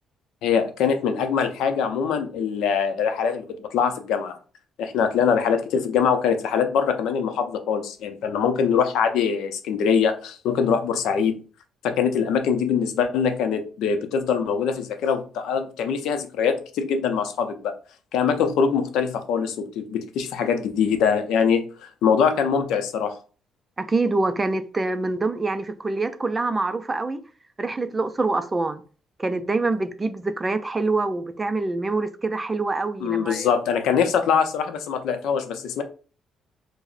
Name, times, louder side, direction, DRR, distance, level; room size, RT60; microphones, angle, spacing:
voice 1, 0.4-4.4 4.8-11.4 11.8-17.7 18.1-23.2 33.0-35.8, left 6 dB, 85° left, 0.5 m, -23 dB
voice 2, 23.8-27.2 27.6-28.8 29.2-33.5, right 3 dB, 20° right, 0.3 m, -25 dB
4.8 x 2.0 x 2.5 m
cardioid pair, 115°, 0 cm